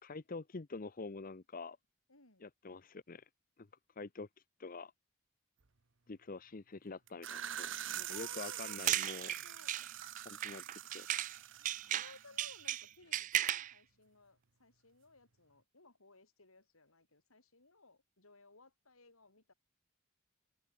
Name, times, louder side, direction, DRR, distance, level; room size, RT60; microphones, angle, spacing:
voice 1, 0.0-1.8 2.4-3.3 3.6-3.7 4.0-4.3 4.6-4.9 6.1-9.3 10.2-10.6 10.9-11.1, left 3 dB, 40° left, 0.7 m, -46 dB
voice 2, 2.1-2.5 8.1-9.8 10.5-10.6 11.9-19.5, left 3 dB, 85° left, 6.5 m, -61 dB
sound 1, 7.1-12.7, right 11 dB, 60° right, 1.0 m, -45 dB
sound 2, 8.6-11.4 11.6-13.7, right 12 dB, 35° right, 0.3 m, -36 dB
head